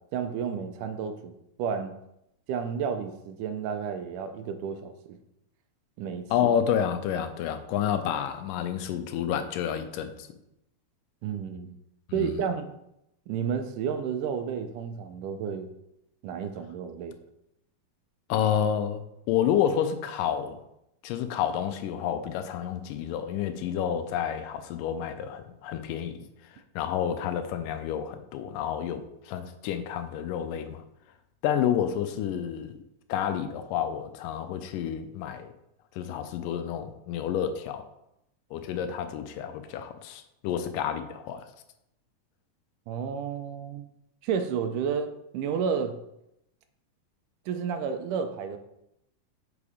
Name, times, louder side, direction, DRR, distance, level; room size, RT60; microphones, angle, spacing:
voice 1, 0.1-1.3 1.6-2.0 2.5-5.2 6.0-6.5 11.2-11.8 12.1-12.7 13.3-15.7 16.2-17.2 42.9-43.9 44.2-46.0 47.5-48.6, right 7 dB, 80° right, 8 dB, 2.1 m, -31 dB
voice 2, 6.3-10.3 12.2-12.3 18.3-20.6 21.0-30.8 31.4-32.8 33.1-35.5 36.0-37.8 38.5-41.5, left 9 dB, 80° left, 9 dB, 2.2 m, -29 dB
6.9 x 4.9 x 4.9 m, 0.81 s
omnidirectional pair, 3.9 m